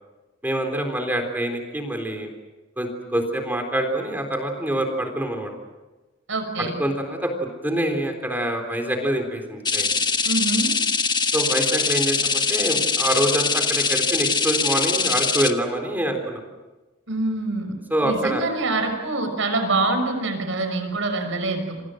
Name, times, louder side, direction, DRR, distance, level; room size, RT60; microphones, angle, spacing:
voice 1, 0.4-2.3 2.8-5.5 6.6-9.9 11.3-16.4 17.9-18.4, right 1 dB, 10° right, 4 dB, 3.7 m, -25 dB
voice 2, 6.3-6.8 10.2-10.7 17.1-17.7 18.0-21.8, right 2 dB, 75° right, 6 dB, 5.8 m, -25 dB
sound 1, 9.6-15.5, left 5 dB, 20° left, 1.4 m, -22 dB
29.0 x 25.5 x 6.5 m, 1.2 s
head